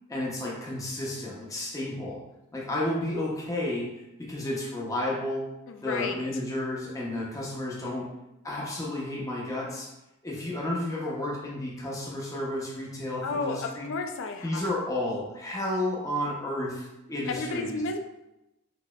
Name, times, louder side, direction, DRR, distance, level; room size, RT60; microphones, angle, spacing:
voice 1, 0.1-2.2 2.5-3.9 4.2-5.5 5.8-8.1 8.4-9.9 10.2-13.9 14.4-17.8, left 1 dB, 15° left, -4 dB, 0.6 m, -32 dB
voice 2, 5.7-6.2 13.2-14.8 17.3-18.0, left 3 dB, 60° left, 5 dB, 0.4 m, -32 dB
4.1 x 2.7 x 2.2 m, 0.92 s
head